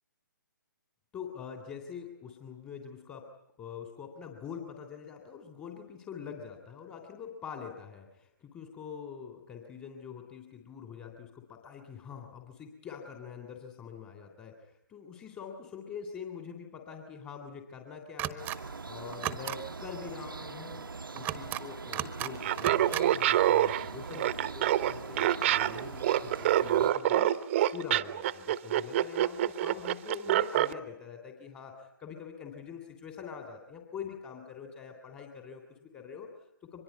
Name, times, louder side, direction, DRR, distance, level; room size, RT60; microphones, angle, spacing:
voice 1, 1.1-3.3 3.6-18.5 18.8-20.9 21.1-27.3 27.7-36.8, left 7 dB, 15° left, 4 dB, 3.2 m, -44 dB
sound 1, 18.2-18.6 19.1-19.6 21.2-21.6 21.9-22.3 22.6-23.0, right 13 dB, 15° right, 1.4 m, -34 dB
sound 2, 18.4-26.9, right 4 dB, 85° right, 1.0 m, -42 dB
Laughter, 22.3-30.7, right 12 dB, 35° right, 1.1 m, -26 dB
24.5 x 22.0 x 9.5 m, 0.78 s
figure-of-eight pair, 145°, 11 cm